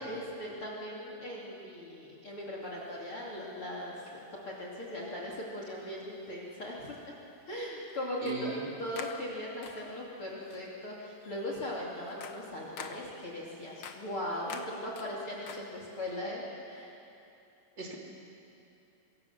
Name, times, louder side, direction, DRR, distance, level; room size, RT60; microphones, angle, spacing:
voice 1, 0.0-7.0 7.5-16.9, left 1 dB, 40° left, -3 dB, 3.4 m, -39 dB
sound 1, 2.9-3.0 4.7-4.8 5.8-5.9 8.2-8.6 8.9-10.1 10.5-10.8 11.2-16.1, left 6 dB, 65° left, 1.3 m, -48 dB
voice 2, 8.2-8.7 17.8-18.0, right 4 dB, 30° right, -1 dB, 3.6 m, -37 dB
25.5 x 24.5 x 7.4 m, 2.8 s
omnidirectional pair, 4.2 m